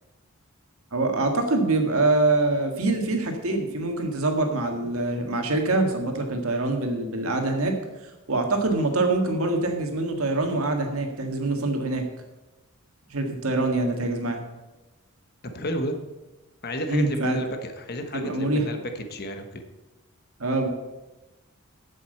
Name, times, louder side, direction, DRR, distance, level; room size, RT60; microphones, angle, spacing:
voice 1, 0.9-7.7 8.3-12.0 13.1-14.4 16.9-17.4 18.1-18.6 20.4-20.7, right 2 dB, 70° right, 4 dB, 1.8 m, -24 dB
voice 2, 15.5-16.0 16.6-19.6, equal, 45° left, 6 dB, 1.2 m, -32 dB
7.9 x 7.6 x 7.8 m, 1.1 s
head